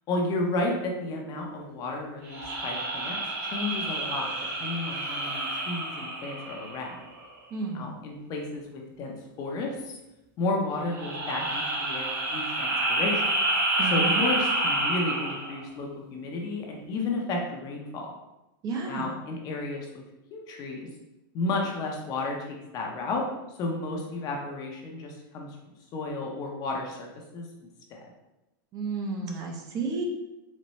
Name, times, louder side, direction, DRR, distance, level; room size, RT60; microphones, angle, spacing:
voice 1, 0.1-4.3 4.6-7.0 7.7-9.9 10.4-13.2 13.9-18.1 18.9-20.0 20.3-20.9 21.3-23.3 23.6-25.6 25.9-27.1 27.3-27.5 27.9-28.0, left 2 dB, 35° left, 1 dB, 0.7 m, -32 dB
sound 1, 2.3-7.0 10.8-15.6, right 2 dB, 70° right, 1.3 m, -29 dB
voice 2, 7.5-7.9 13.8-14.2 18.6-19.1 28.7-30.1, right 4 dB, 30° right, 1 dB, 0.6 m, -32 dB
4.1 x 2.2 x 3.0 m, 0.96 s
supercardioid pair, 140°, 12 cm